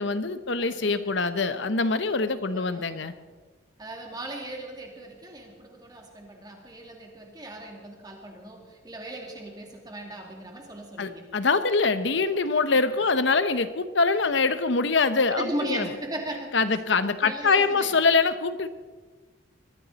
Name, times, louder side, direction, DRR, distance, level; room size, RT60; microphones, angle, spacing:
voice 1, 0.0-3.1 11.0-15.9 16.5-18.7, left 4 dB, 65° left, 11 dB, 0.9 m, -24 dB
voice 2, 0.7-1.4 2.5-3.1 3.8-11.3 15.3-16.6 17.2-17.9, right 1 dB, 20° right, 1 dB, 2.5 m, -38 dB
22.0 x 14.0 x 4.2 m, 1.3 s
head